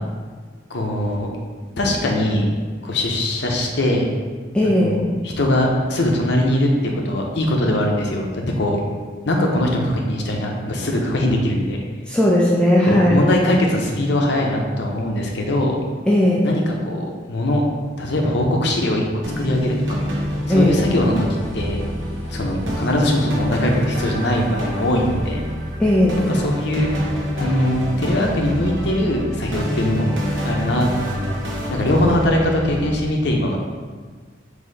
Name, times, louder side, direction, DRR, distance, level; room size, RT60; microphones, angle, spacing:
voice 1, 0.7-1.3 1.8-2.6 2.8-4.1 4.6-8.8 9.3-11.8 12.8-15.8 16.4-17.6 18.0-19.0 19.4-20.0 20.5-21.3 21.5-21.8 22.3-25.4 26.3-26.9 27.4-30.1 30.4-31.4 31.7-33.6, left 1 dB, 65° left, 0 dB, 0.7 m, -21 dB
voice 2, 4.5-5.0 12.1-13.2 16.1-16.4 20.5-20.8 25.8-26.2, left 1 dB, 5° left, -5 dB, 0.4 m, -16 dB
sound 1, 19.2-33.0, equal, 85° right, 0.8 m, -27 dB
4.0 x 2.7 x 3.9 m, 1.5 s
head